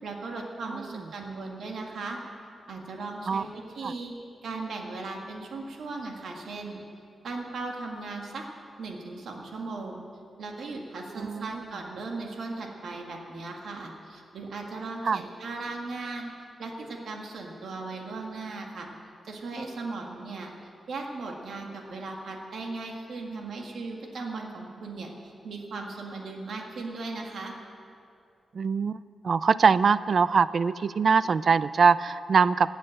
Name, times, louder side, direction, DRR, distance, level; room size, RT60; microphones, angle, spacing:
voice 1, 0.0-2.2 2.7-4.1 4.4-6.8 7.2-8.4 8.8-10.0 10.4-16.3 16.6-18.9 19.2-20.5 20.9-27.5, right 3 dB, 75° right, 1 dB, 1.8 m, -37 dB
voice 2, 11.2-11.6 15.1-15.2 28.5-29.0 29.2-32.7, right 5 dB, 50° right, 17 dB, 0.4 m, -22 dB
16.5 x 8.2 x 8.9 m, 2.4 s
wide cardioid pair, 145°, 0 cm